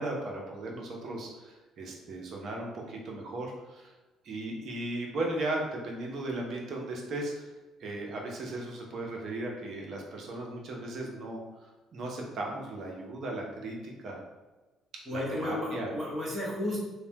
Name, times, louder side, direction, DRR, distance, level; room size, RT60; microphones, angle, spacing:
voice 1, 0.0-3.9 4.2-7.5 7.8-14.2 14.9-15.9, right 2 dB, 60° right, 0 dB, 0.7 m, -36 dB
voice 2, 15.1-16.8, left 1 dB, 30° right, -6 dB, 1.1 m, -33 dB
3.1 x 2.1 x 2.8 m, 1.2 s
supercardioid pair, 75°, 0 cm